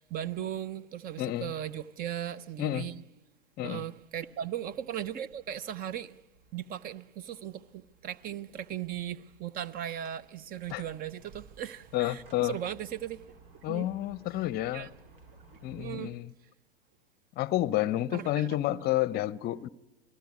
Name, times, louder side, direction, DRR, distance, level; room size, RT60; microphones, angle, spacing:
voice 1, 0.0-3.0 3.6-6.2 6.5-13.2 13.7-13.9 14.7-14.9 15.8-16.1 18.1-18.5, right 10 dB, 30° right, 0.8 m, -37 dB
voice 2, 1.2-1.5 2.6-2.9 3.6-3.8 10.7-10.8 11.9-12.6 13.6-14.9 15.6-16.3 17.4-19.7, left 14 dB, 30° left, 0.8 m, -30 dB
sound 1, 4.0-15.9, right 3 dB, 65° right, 4.4 m, -58 dB
27.0 x 18.5 x 9.5 m
figure-of-eight pair, 95°, 30 cm